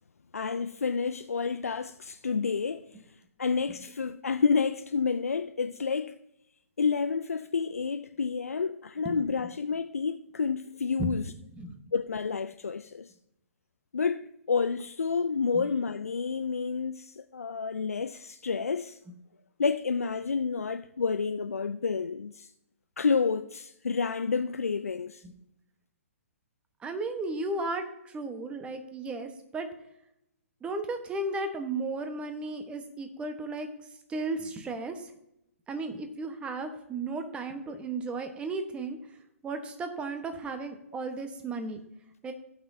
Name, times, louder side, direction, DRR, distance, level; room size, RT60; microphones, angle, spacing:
voice 1, 0.3-2.9 3.4-6.2 6.8-11.3 11.9-13.1 13.9-19.0 19.6-22.5 23.0-25.2, left 5 dB, 80° left, 0.4 m, -29 dB
voice 2, 26.8-27.8 28.1-29.7 30.6-33.7 34.1-35.0 35.7-39.0 39.4-41.8 42.2-42.3, right 3 dB, 15° right, 1.1 m, -34 dB
18.0 x 6.0 x 2.7 m
figure-of-eight pair, 125°, 8 cm